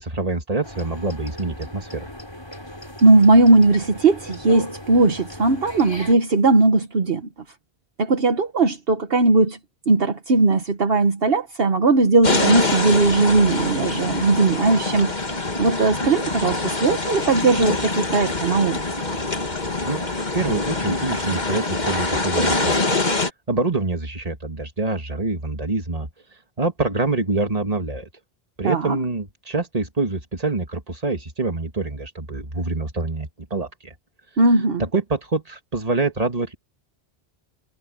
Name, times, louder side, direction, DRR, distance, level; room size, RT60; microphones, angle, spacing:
voice 1, 0.0-2.1 19.8-22.9 23.5-26.1 26.6-28.1 28.6-33.9 34.8-36.6, right 3 dB, 35° right, 2.2 m, -26 dB
sound 1, 0.6-6.2, left 1 dB, 25° left, 6.1 m, -38 dB
voice 2, 3.0-7.3 8.0-9.6 9.9-15.1 15.6-18.8 28.6-29.0 34.4-34.8, right 3 dB, 65° right, 1.4 m, -18 dB
sound 2, 12.2-23.3, left 2 dB, 45° left, 2.2 m, -24 dB
omnidirectional pair, 1.1 m